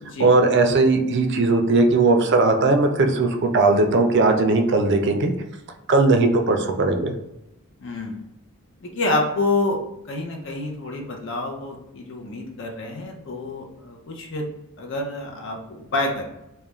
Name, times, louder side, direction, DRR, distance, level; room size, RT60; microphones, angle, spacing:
voice 1, 0.2-5.3 5.9-7.1, right 3 dB, 55° right, 4 dB, 0.4 m, -18 dB
voice 2, 7.8-8.2 8.8-9.8 10.0-14.5 14.8-16.3, left 2 dB, 55° left, 1 dB, 0.6 m, -27 dB
2.3 x 2.1 x 3.0 m, 0.89 s
head